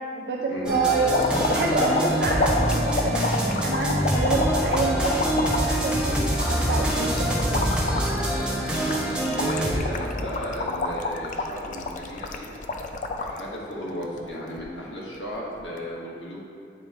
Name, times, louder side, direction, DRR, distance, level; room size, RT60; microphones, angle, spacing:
voice 1, 0.2-1.1 1.5-7.7, right 3 dB, 55° right, -2 dB, 0.4 m, -28 dB
sound 1, 0.7-9.8, right 1 dB, 5° right, 0.7 m, -25 dB
sound 2, 1.1-13.4 13.9-14.6 15.6-15.8, left 2 dB, 40° left, 0.4 m, -29 dB
voice 2, 9.4-12.5 13.2-16.4, equal, 75° left, -5 dB, 1.5 m, -34 dB
8.8 x 3.2 x 4.3 m, 2.5 s
head